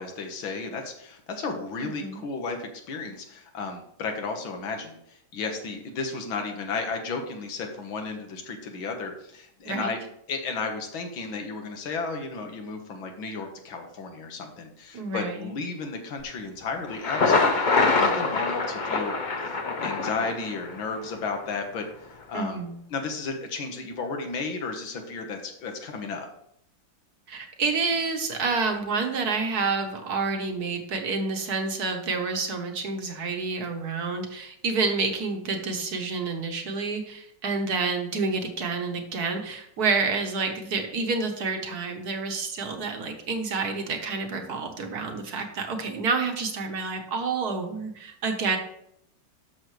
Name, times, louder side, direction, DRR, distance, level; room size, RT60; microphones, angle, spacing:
voice 1, 0.0-10.0 10.3-19.1 19.4-21.9 22.3-26.3, left 4 dB, 90° left, 4 dB, 2.1 m, -33 dB
voice 2, 1.8-2.2 9.6-9.9 14.9-15.5 22.3-22.8 27.3-48.6, right 4 dB, 55° right, 4 dB, 1.5 m, -29 dB
Thunder, 16.9-20.8, left 3 dB, 45° left, 0.6 m, -24 dB
12.0 x 6.8 x 3.2 m, 0.72 s
omnidirectional pair, 2.1 m